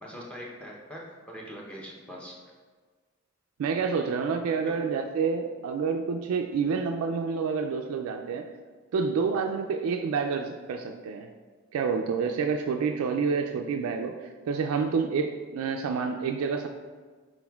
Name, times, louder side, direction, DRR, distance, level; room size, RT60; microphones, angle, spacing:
voice 1, 0.0-2.3 4.7-4.8, equal, 5° left, -3 dB, 0.7 m, -42 dB
voice 2, 3.6-8.5 8.9-11.3 11.7-16.7, right 5 dB, 85° right, 6 dB, 0.3 m, -28 dB
6.0 x 3.8 x 2.3 m, 1.5 s
head